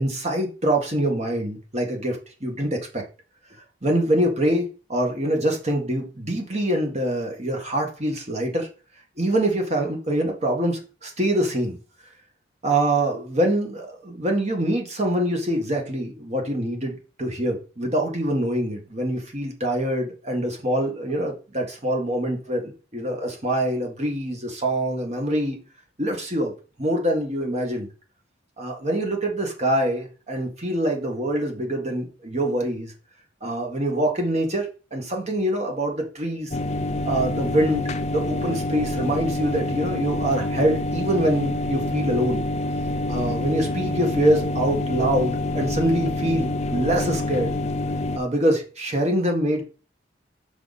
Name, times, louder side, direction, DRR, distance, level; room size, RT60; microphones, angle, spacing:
voice 1, 0.0-3.0 3.8-8.7 9.2-11.8 12.6-25.6 26.0-26.5 26.8-27.9 28.6-32.9 33.4-36.5 37.0-42.4 43.1-47.5 48.1-49.6, right 1 dB, 35° right, 2 dB, 1.7 m, -25 dB
sound 1, 36.5-48.2, left 2 dB, 35° left, 0.5 m, -27 dB
6.3 x 5.0 x 4.1 m, 0.34 s
head